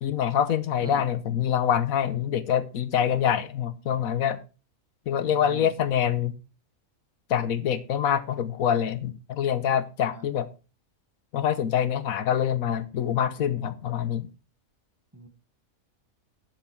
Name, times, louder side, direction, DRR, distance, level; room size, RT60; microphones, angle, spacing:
voice 1, 0.0-4.4 5.1-6.4 7.3-10.5 11.3-14.3, left 9 dB, 85° left, 1.4 m, -25 dB
voice 2, 5.2-5.7 10.1-10.2 15.1-15.3, right 3 dB, 15° right, 1.4 m, -41 dB
11.0 x 7.3 x 4.6 m
omnidirectional pair, 1.4 m